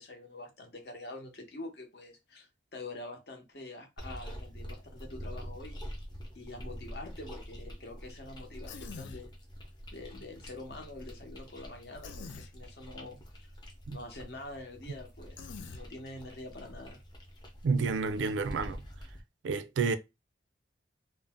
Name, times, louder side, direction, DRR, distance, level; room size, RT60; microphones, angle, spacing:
voice 1, 0.0-5.8 6.3-9.3 9.9-13.5 13.9-17.0, left 2 dB, 60° left, 0.8 m, -46 dB
sound 1, 4.0-19.2, equal, 25° left, 0.6 m, -46 dB
Human voice, 8.7-9.2 12.0-12.5 15.4-15.8, left 4 dB, 75° left, 0.4 m, -44 dB
voice 2, 17.6-18.8 19.4-20.0, right 4 dB, 75° right, 0.3 m, -29 dB
2.6 x 2.0 x 3.4 m
head